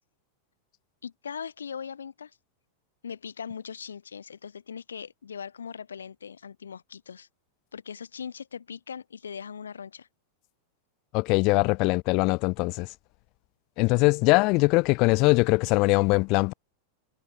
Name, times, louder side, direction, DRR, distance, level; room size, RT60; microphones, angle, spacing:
voice 1, 1.0-2.3 3.0-7.3 7.7-10.1, left 7 dB, 70° left, 3.3 m, -40 dB
voice 2, 11.1-12.9 13.8-16.5, left 26 dB, 40° left, 0.6 m, -22 dB
figure-of-eight pair, 90°, 0 cm